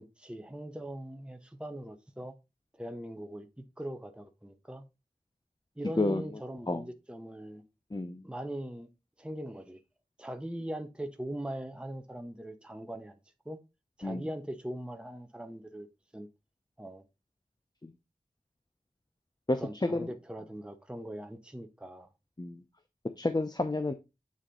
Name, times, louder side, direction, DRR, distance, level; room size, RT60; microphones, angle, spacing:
voice 1, 0.0-2.3 2.7-4.9 5.8-7.6 8.2-8.9 9.2-9.8 10.2-13.1 13.5-13.6 14.0-15.9 16.1-16.3 16.8-17.0 19.5-22.1, right 1 dB, 5° right, 0.8 m, -41 dB
voice 2, 7.9-8.2 14.0-14.3 17.8-17.9 19.5-19.6 19.9-20.1 22.4-22.6 23.2-23.9, left 2 dB, 30° left, 0.7 m, -30 dB
8.5 x 4.1 x 3.7 m
wide cardioid pair, 45°, 15 cm